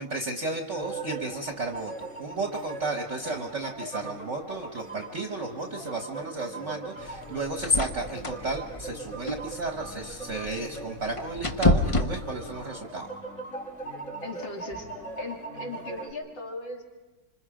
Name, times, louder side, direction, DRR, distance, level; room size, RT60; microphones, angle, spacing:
voice 1, 0.0-13.1, right 3 dB, 40° right, 3 dB, 1.4 m, -33 dB
sound 1, 0.7-16.1, right 2 dB, 45° left, 4.9 m, -40 dB
sound 2, 7.0-12.7, left 2 dB, 30° left, 0.6 m, -29 dB
voice 2, 14.2-14.9 15.2-16.8, left 2 dB, 75° left, 1 dB, 3.5 m, -38 dB
26.5 x 26.0 x 5.0 m, 1.2 s
omnidirectional pair, 2.1 m